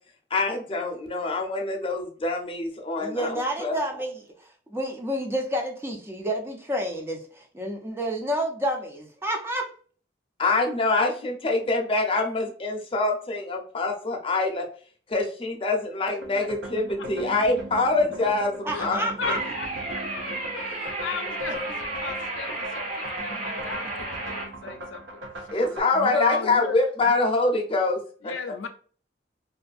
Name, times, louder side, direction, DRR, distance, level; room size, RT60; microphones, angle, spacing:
voice 1, 0.3-4.0 10.4-14.7 15.1-19.3 25.5-28.0, left 3 dB, 30° left, 2 dB, 0.6 m, -25 dB
voice 2, 3.0-9.7 18.6-19.4, equal, 15° right, 2 dB, 0.4 m, -30 dB
sound 1, 16.2-25.8, right 1 dB, 70° right, 0.7 m, -39 dB
voice 3, 19.2-20.0 20.5-25.2 25.9-26.8 27.1-27.2 28.2-28.7, left 4 dB, 80° left, 7 dB, 0.4 m, -36 dB
sound 2, 19.2-24.4, right 2 dB, 40° right, 1.1 m, -33 dB
2.6 x 2.4 x 2.4 m, 0.43 s
head